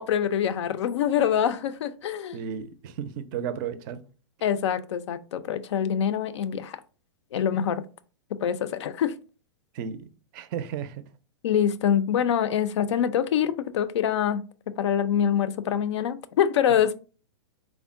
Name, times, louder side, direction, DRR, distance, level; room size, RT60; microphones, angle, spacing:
voice 1, 0.0-2.4 4.4-6.8 7.3-7.8 8.4-9.1 11.4-14.4 14.8-16.9, left 9 dB, 70° left, 0.4 m, -25 dB
voice 2, 2.3-4.0 9.7-11.0, right 8 dB, 45° right, 0.4 m, -34 dB
3.5 x 2.1 x 3.6 m
hypercardioid pair, 125°, 15 cm